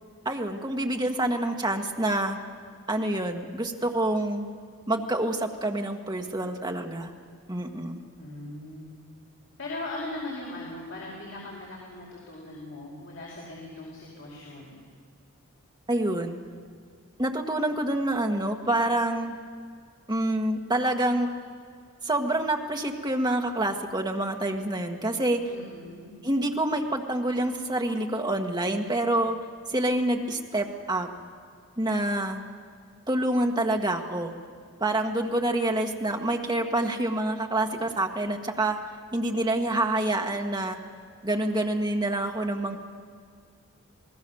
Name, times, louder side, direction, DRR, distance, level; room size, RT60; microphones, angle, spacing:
voice 1, 0.2-2.4 2.9-4.5 4.9-7.1 7.5-8.0 15.9-16.4 17.2-19.3 20.1-21.3 22.0-25.5 26.2-29.4 29.7-31.1 31.8-32.4 33.1-34.3 34.8-38.8 39.1-40.8 41.2-42.8, right 1 dB, 20° right, 3 dB, 1.6 m, -27 dB
voice 2, 8.2-8.9 9.6-14.8 25.5-26.1, left 2 dB, 55° left, -4 dB, 4.9 m, -39 dB
28.0 x 19.0 x 7.1 m, 2.2 s
head